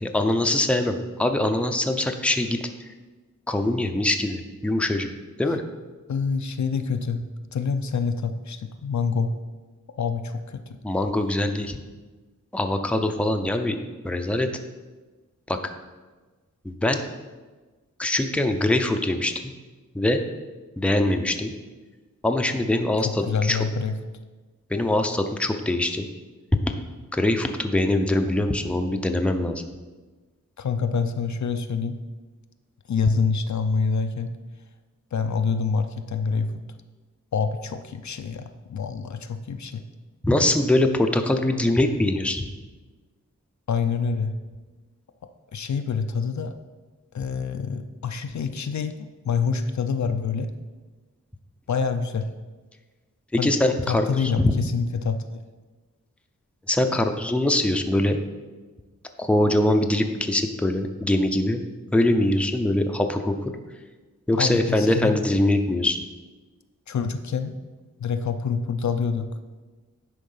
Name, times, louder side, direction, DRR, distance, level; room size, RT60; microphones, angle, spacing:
voice 1, 0.0-2.7 3.5-5.1 5.4-5.6 10.8-11.8 12.5-13.8 14.0-14.5 15.5-15.6 16.6-17.0 18.0-19.4 19.9-20.2 20.8-21.5 22.2-23.6 24.7-26.1 26.7-26.8 27.1-29.6 40.2-42.5 53.3-54.5 56.7-58.2 59.2-61.6 61.9-63.5 64.3-66.0, left 1 dB, 5° left, 5 dB, 0.6 m, -23 dB
voice 2, 6.1-7.3 7.5-9.3 9.9-10.8 23.0-24.0 30.6-32.0 32.9-34.3 35.1-36.5 37.3-39.8 43.7-44.3 45.5-46.5 47.1-50.5 51.7-52.3 53.4-53.5 53.8-55.3 64.4-65.2 66.9-67.6 68.0-69.3, left 5 dB, 65° left, 8 dB, 0.5 m, -26 dB
10.0 x 3.7 x 5.6 m, 1.3 s
wide cardioid pair, 80°, 31 cm